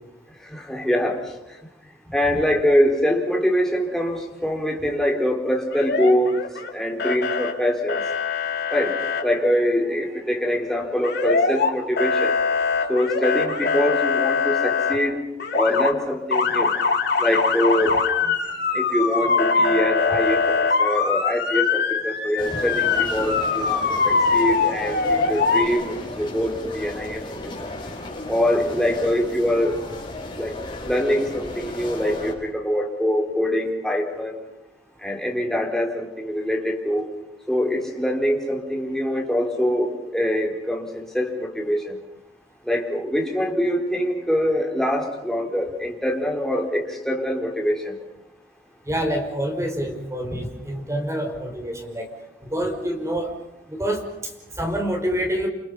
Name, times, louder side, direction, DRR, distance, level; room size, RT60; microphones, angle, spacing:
voice 1, 0.4-1.3 2.1-6.4 6.7-8.0 8.7-9.0 9.2-15.2 15.5-16.7 17.2-18.0 18.2-18.3 18.7-27.7 28.3-29.8 30.4-30.5 30.9-34.5 35.0-37.1 37.5-42.0 42.6-48.0, equal, 5° left, 0 dB, 4.2 m, -24 dB
Motor vehicle (road) / Siren, 5.7-6.7 7.0-7.5 7.9-9.2 11.0-11.7 12.0-14.9 15.4-15.9 16.3-25.7, left 5 dB, 65° left, 3.4 m, -22 dB
sound 1, 22.4-32.3, left 2 dB, 25° left, 7.0 m, -35 dB
voice 2, 48.9-52.1 52.4-53.3 53.7-54.0 54.5-55.5, equal, 15° right, 3 dB, 5.2 m, -26 dB
29.0 x 28.5 x 5.5 m, 0.93 s
head